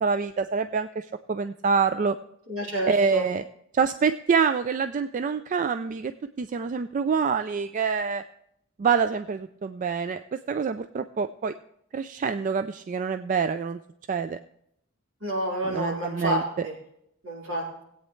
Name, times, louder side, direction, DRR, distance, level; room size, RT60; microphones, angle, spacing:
voice 1, 0.0-2.2 2.9-3.4 3.7-6.1 6.4-8.2 8.8-11.5 11.9-13.8 14.1-14.4 15.6-16.7, right 5 dB, 40° right, 11 dB, 0.3 m, -26 dB
voice 2, 2.5-3.2 15.2-16.7 17.2-17.8, equal, 70° right, -3 dB, 3.7 m, -29 dB
18.0 x 8.5 x 3.2 m, 0.75 s
head